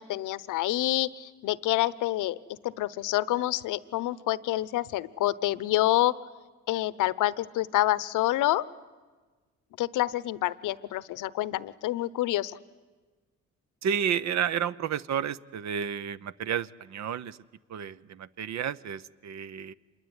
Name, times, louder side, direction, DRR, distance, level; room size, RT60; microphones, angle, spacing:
voice 1, 0.0-2.4 2.6-6.2 6.7-8.7 9.8-12.6, left 15 dB, 90° left, 19 dB, 0.9 m, -27 dB
voice 2, 13.8-17.4 17.7-19.7, right 8 dB, 65° right, 16 dB, 0.8 m, -31 dB
26.5 x 22.5 x 9.7 m, 1.3 s
cardioid pair, 90°, 30 cm